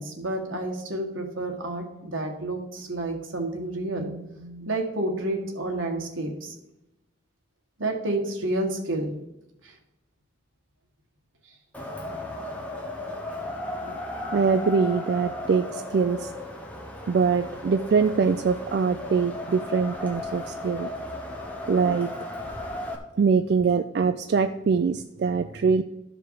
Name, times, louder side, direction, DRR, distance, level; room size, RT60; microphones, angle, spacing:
voice 1, 0.0-6.5 7.8-9.1 9.6-9.7 13.8-13.9, right 1 dB, 85° right, 2 dB, 1.6 m, -30 dB
Wind, 11.7-23.0, left 1 dB, 5° left, 1.0 m, -35 dB
voice 2, 14.3-16.3 17.1-20.9 21.7-22.1 23.2-25.8, right 5 dB, 55° right, 9 dB, 0.3 m, -23 dB
12.5 x 5.0 x 4.8 m, 0.91 s
head